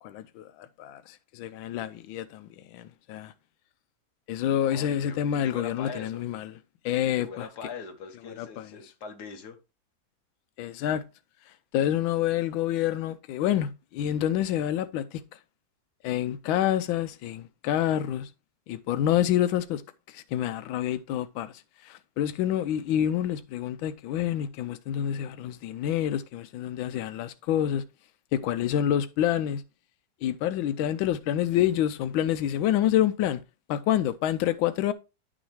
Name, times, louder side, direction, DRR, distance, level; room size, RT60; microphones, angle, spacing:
voice 1, 0.0-3.3 4.3-6.5 6.8-7.5 8.4-8.7 10.6-11.0 11.5-15.2 16.0-18.3 18.7-19.8 20.1-27.8 28.3-29.6 30.2-33.4 33.7-34.9, left 11 dB, 90° left, 1.4 m, -28 dB
voice 2, 4.6-6.2 7.2-9.6, left 5 dB, 60° left, 1.8 m, -41 dB
10.5 x 6.3 x 3.0 m
omnidirectional pair, 2.1 m